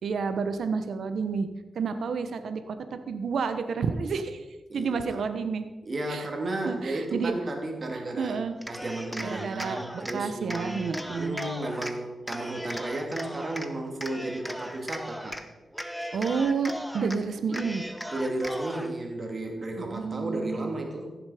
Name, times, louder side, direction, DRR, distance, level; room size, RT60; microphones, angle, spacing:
voice 1, 0.0-1.5 1.7-4.4 4.7-5.7 6.1-6.3 6.6-7.3 8.2-8.5 9.2-11.4 16.1-17.8 19.8-20.7, right 5 dB, 80° right, 9 dB, 0.9 m, -30 dB
voice 2, 4.7-5.2 5.8-8.4 8.7-15.4 18.1-21.2, right 2 dB, 45° right, 2 dB, 2.5 m, -33 dB
Cheering, 8.5-10.2 10.5-11.9 12.3-13.7 14.0-15.4 15.7-17.2 17.5-18.9, equal, ahead, 1.0 m, -37 dB
15.5 x 7.2 x 4.9 m, 1.1 s
cardioid pair, 70°, 0 cm